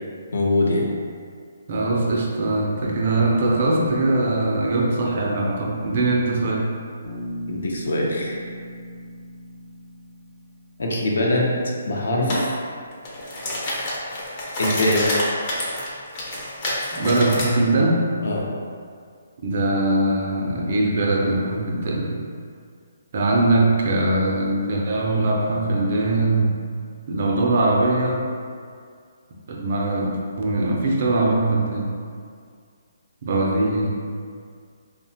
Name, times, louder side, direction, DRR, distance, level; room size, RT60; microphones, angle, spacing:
voice 1, 0.3-0.8 7.5-8.3 10.8-11.6 11.9-12.4 14.6-15.2 18.2-18.5, left 1 dB, 80° left, -2 dB, 0.5 m, -22 dB
voice 2, 1.7-6.7 16.9-18.1 19.4-22.2 23.1-26.6 27.1-28.2 29.5-31.9 33.2-33.9, right 2 dB, 45° right, -1 dB, 0.4 m, -21 dB
Bass guitar, 7.0-11.1, equal, 50° left, 0.9 m, -37 dB
sound 1, 12.3-12.5 12.9-17.5, left 1 dB, 30° left, 0.5 m, -27 dB
2.8 x 2.0 x 2.7 m, 2.1 s
hypercardioid pair, 165°, 0 cm